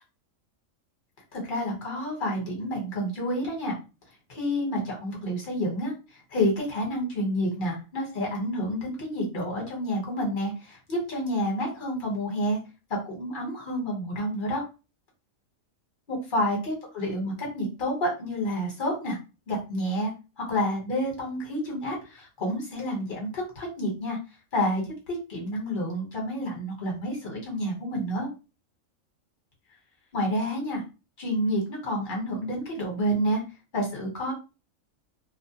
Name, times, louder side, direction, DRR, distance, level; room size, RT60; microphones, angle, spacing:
voice 1, 1.3-3.8 4.3-12.6 12.9-14.6 16.1-19.2 19.5-20.1 20.4-24.2 24.5-28.3 30.1-30.8 31.2-33.4 33.7-34.3, equal, 40° left, -2 dB, 1.1 m, -29 dB
2.5 x 2.1 x 2.8 m, 0.30 s
omnidirectional pair, 1.4 m